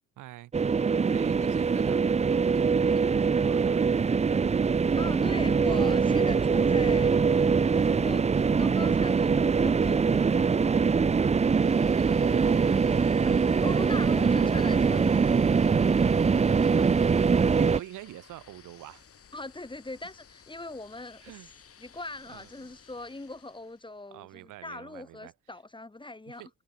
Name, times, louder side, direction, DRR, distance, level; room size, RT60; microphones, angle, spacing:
voice 1, 0.2-0.8 1.1-3.9 12.0-13.0 16.5-19.1 21.2-21.5 22.3-22.7 24.1-25.3 26.3-26.5, right 15 dB, 90° right, 5.6 m, -46 dB
sound 1, 0.5-17.8, right 5 dB, 20° right, 0.6 m, -23 dB
voice 2, 4.9-8.2 8.6-10.5 13.3-15.3 19.3-21.5 21.8-26.4, left 2 dB, 15° left, 7.7 m, -40 dB
sound 2, 11.3-24.1, left 7 dB, 50° left, 7.5 m, -56 dB
cardioid pair, 90°, 30 cm